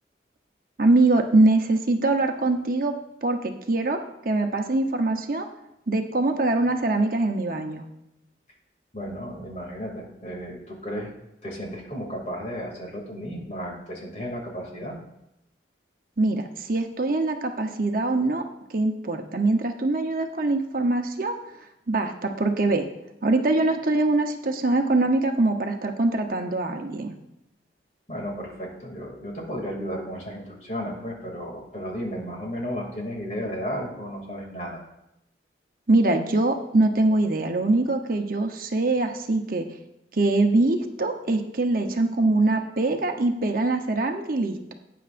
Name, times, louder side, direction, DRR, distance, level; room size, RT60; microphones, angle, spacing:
voice 1, 0.8-2.9 3.2-4.0 4.2-5.5 5.9-7.8 16.2-18.4 18.7-21.4 21.9-22.9 23.2-27.2 35.9-39.7 40.1-44.7, right 2 dB, 50° right, 4 dB, 0.9 m, -23 dB
voice 2, 8.9-11.1 11.4-15.0 28.1-34.8, equal, 40° left, 0 dB, 2.6 m, -34 dB
17.5 x 9.3 x 2.6 m, 0.84 s
head